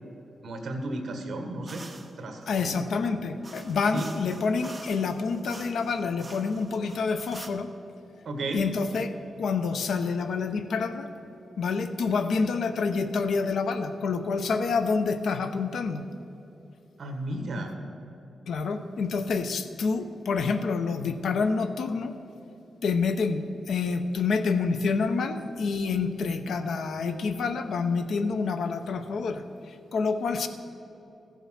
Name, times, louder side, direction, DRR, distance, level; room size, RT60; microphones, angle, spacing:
voice 1, 0.4-1.8 2.2-2.8 3.9-4.0 8.2-8.7 17.0-17.7, right 1 dB, 50° right, 4 dB, 1.6 m, -33 dB
sound 1, 1.7-2.2 3.4-7.5, right 3 dB, 20° right, 0.7 m, -47 dB
voice 2, 2.5-7.7 8.5-11.1 11.6-16.0 18.5-22.1 22.8-30.5, left 4 dB, 70° left, 9 dB, 0.7 m, -28 dB
14.5 x 7.3 x 5.8 m, 2.9 s
wide cardioid pair, 170°, 0 cm